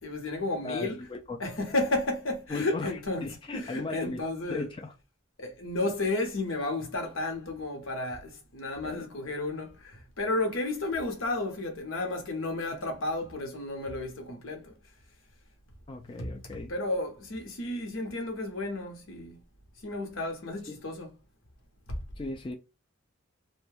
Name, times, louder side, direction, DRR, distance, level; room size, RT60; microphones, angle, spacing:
voice 1, 0.0-1.0 1.4-4.7 5.4-14.7 16.1-19.4 19.8-21.1 21.9-22.0, left 2 dB, 80° left, 0.9 m, -32 dB
voice 2, 0.6-1.4 2.5-2.9 3.2-4.2 4.5-4.9 8.8-9.1 15.9-16.7 20.7-20.8 22.2-22.5, left 3 dB, 25° left, 0.3 m, -37 dB
2.5 x 2.2 x 3.3 m
head